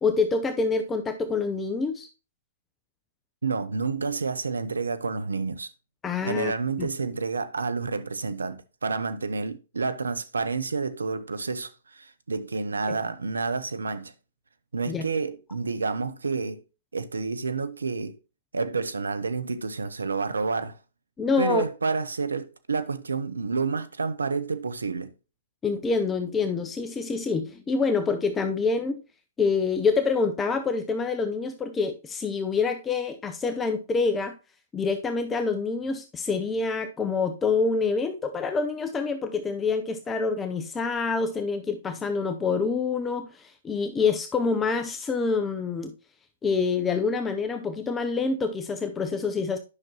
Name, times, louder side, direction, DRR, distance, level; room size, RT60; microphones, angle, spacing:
voice 1, 0.0-2.1 6.0-6.5 6.8-6.9 12.9-13.0 14.9-15.0 21.2-21.6 25.6-29.0 29.4-34.3 34.7-45.9 46.4-49.6, left 4 dB, 15° left, 0.6 m, -26 dB
voice 2, 3.4-5.7 6.3-14.1 14.7-16.6 16.9-18.2 18.5-20.8 21.4-25.1, right 4 dB, 85° right, 0.7 m, -29 dB
9.7 x 5.9 x 2.9 m
hypercardioid pair, 125°, 0 cm